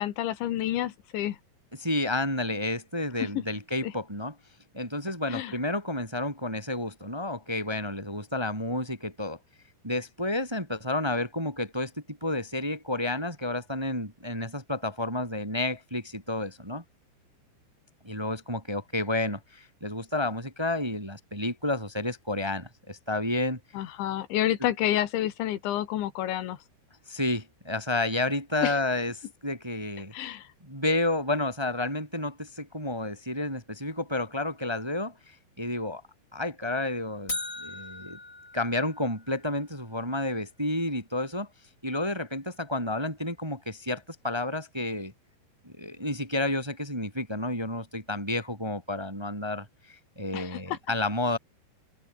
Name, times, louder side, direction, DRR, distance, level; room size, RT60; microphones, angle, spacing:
voice 1, 0.0-1.4 3.2-3.3 3.8-3.9 5.3-5.5 23.8-26.6 28.6-28.8 30.1-30.5 50.3-50.8, left 13 dB, 80° left, 4.0 m, -29 dB
voice 2, 1.8-4.3 4.7-9.4 9.8-16.8 18.0-23.6 27.1-30.1 30.6-36.0 36.3-38.2 38.5-41.5 41.8-45.1 45.6-51.4, left 1 dB, 5° right, 2.7 m, -31 dB
sound 1, 37.3-39.4, left 2 dB, 15° left, 5.8 m, -38 dB
open air
omnidirectional pair, 5.2 m